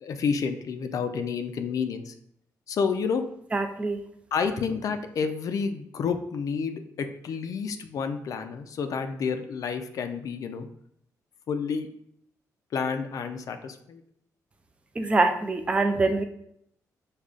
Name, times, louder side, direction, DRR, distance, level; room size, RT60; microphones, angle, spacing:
voice 1, 0.0-2.1 2.7-3.2 4.3-10.7 11.5-11.9 12.7-14.0, left 5 dB, 60° left, 8 dB, 0.4 m, -29 dB
voice 2, 3.5-4.0 15.0-16.2, right 3 dB, 15° right, 6 dB, 0.3 m, -24 dB
4.9 x 2.3 x 2.4 m, 0.72 s
cardioid pair, 100°, 7 cm